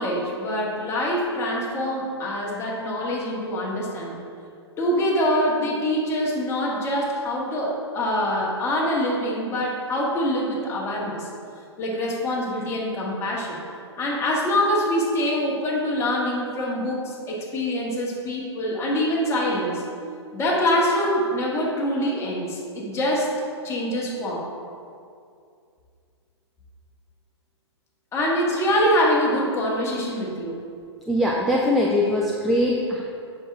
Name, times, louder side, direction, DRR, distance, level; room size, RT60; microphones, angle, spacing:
voice 1, 0.0-4.2 4.8-11.3 11.8-13.6 14.0-19.8 20.3-23.3 23.6-24.5 28.1-30.6, equal, 20° left, -4 dB, 1.6 m, -24 dB
voice 2, 31.1-33.0, left 1 dB, ahead, -2 dB, 0.4 m, -21 dB
7.7 x 6.1 x 3.5 m, 2.4 s
figure-of-eight pair, 115°, 15 cm